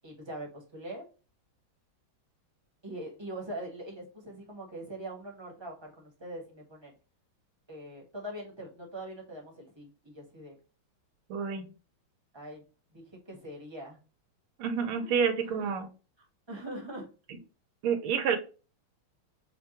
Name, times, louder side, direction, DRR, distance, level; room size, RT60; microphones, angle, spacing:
voice 1, 0.0-1.1 2.8-6.9 7.7-10.6 12.3-12.6 12.9-14.0 15.6-15.7 16.5-17.1, right 1 dB, 20° right, -1 dB, 0.8 m, -42 dB
voice 2, 11.3-11.7 14.6-15.9 17.3-17.4 17.8-18.4, right 6 dB, 85° right, 5 dB, 1.6 m, -29 dB
5.1 x 2.3 x 2.9 m, 0.33 s
omnidirectional pair, 2.2 m